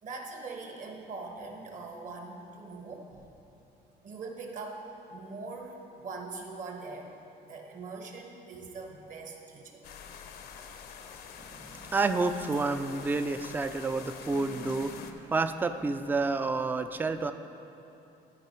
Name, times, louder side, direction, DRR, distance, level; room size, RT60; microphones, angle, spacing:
voice 1, 0.0-3.2 4.0-4.8 5.1-7.1 7.4-9.8, right 3 dB, 50° right, 2 dB, 1.2 m, -42 dB
sound 1, 9.8-15.1, left 7 dB, 65° left, 0.6 m, -46 dB
voice 2, 11.4-17.3, right 3 dB, 10° right, 9 dB, 0.3 m, -30 dB
13.0 x 4.9 x 4.4 m, 2.8 s
cardioid pair, 110°, 17 cm